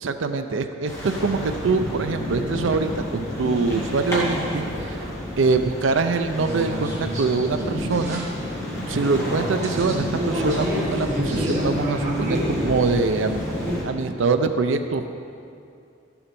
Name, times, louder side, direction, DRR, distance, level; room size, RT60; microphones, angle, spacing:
voice 1, 0.0-5.0 5.4-8.2 8.9-10.7 10.9-13.5 13.8-15.0, right 4 dB, 75° right, 8 dB, 0.5 m, -24 dB
sound 1, 0.9-13.8, left 1 dB, 15° left, 1.9 m, -30 dB
sound 2, 6.4-13.8, right 1 dB, 35° right, 1.9 m, -29 dB
12.5 x 7.1 x 5.2 m, 2.5 s
head